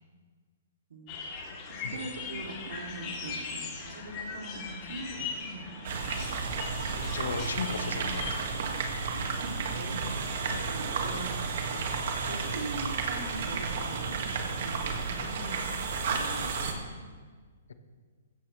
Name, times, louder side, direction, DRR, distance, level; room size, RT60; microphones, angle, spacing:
sound 1, 1.1-8.3, left 5 dB, 35° left, 3.1 m, -40 dB
voice 1, 1.7-5.9 9.1-11.8 12.2-15.6 16.1-16.8, right 2 dB, 75° right, 1 dB, 2.9 m, -42 dB
sound 2, 5.8-16.7, right 4 dB, 60° right, 2.0 m, -32 dB
voice 2, 6.8-8.5 10.4-10.6, left 5 dB, 85° left, 7 dB, 1.4 m, -36 dB
15.5 x 15.0 x 3.4 m, 1.5 s
hypercardioid pair, 150°, 0 cm